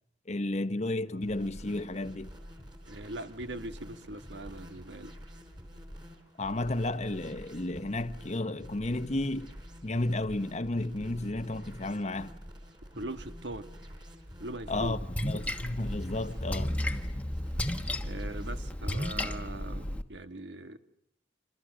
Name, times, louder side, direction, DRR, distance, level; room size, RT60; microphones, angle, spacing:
voice 1, 0.3-2.3 6.4-9.5 9.8-12.3 14.7-16.7, left 2 dB, 40° left, 1.0 m, -32 dB
sound 1, 1.2-18.7, equal, 25° right, 4.6 m, -48 dB
voice 2, 2.9-5.1 12.9-13.7 14.4-14.9 18.0-20.8, right 1 dB, 75° right, 1.5 m, -41 dB
Splash splatter, 14.7-20.0, left 1 dB, 10° left, 1.2 m, -33 dB
27.0 x 26.5 x 6.4 m
head